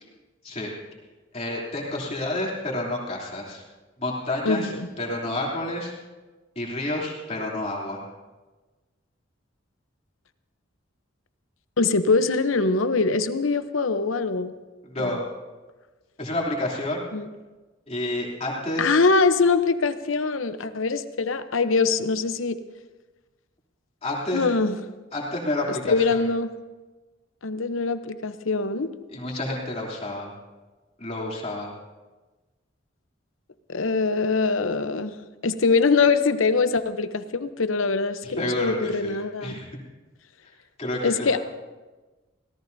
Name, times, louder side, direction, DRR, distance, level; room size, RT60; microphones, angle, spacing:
voice 1, 1.3-3.6 4.0-5.9 6.5-8.0 14.8-15.2 16.2-17.0 17.9-18.9 24.0-24.5 25.1-26.2 29.1-30.3 31.0-31.7 38.2-39.2 39.4-39.6 40.8-41.4, left 1 dB, 30° left, -3 dB, 3.0 m, -29 dB
voice 2, 4.4-4.9 11.8-14.5 15.0-15.1 17.1-17.3 18.8-22.6 24.3-24.8 25.8-26.5 27.4-28.9 33.7-35.1 35.4-39.6 41.0-41.4, left 4 dB, 85° left, 10 dB, 0.8 m, -23 dB
25.0 x 17.0 x 2.7 m, 1.2 s
head